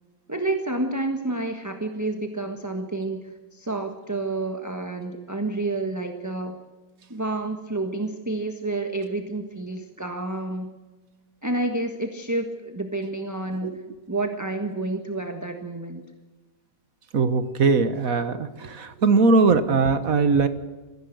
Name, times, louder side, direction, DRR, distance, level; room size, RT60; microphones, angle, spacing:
voice 1, 0.3-3.2 3.5-6.6 7.1-10.7 11.4-13.7 14.1-16.0, right 2 dB, 10° right, 5 dB, 1.2 m, -29 dB
voice 2, 17.1-20.5, right 4 dB, 55° right, 11 dB, 1.5 m, -20 dB
21.5 x 16.0 x 7.9 m, 1.3 s
omnidirectional pair, 2.0 m